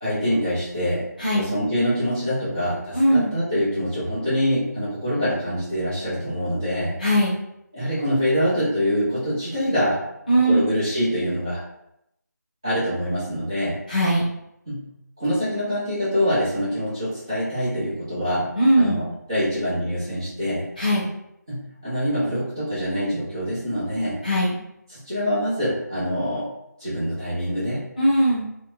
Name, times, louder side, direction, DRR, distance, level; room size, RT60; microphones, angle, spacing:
voice 1, 0.0-1.1 1.3-7.0 7.7-10.0 10.3-11.6 12.6-13.8 14.7-14.9 15.2-20.7 21.5-24.2 24.9-26.5 26.8-27.9, equal, 15° right, -14 dB, 0.6 m, -25 dB
voice 2, 2.9-3.3 7.0-7.3 10.3-10.7 13.9-14.2 18.5-19.0 20.8-21.0 24.2-24.5 28.0-28.4, right 1 dB, 25° left, -7 dB, 0.8 m, -19 dB
2.6 x 2.0 x 3.1 m, 0.81 s
figure-of-eight pair, 175°, 10 cm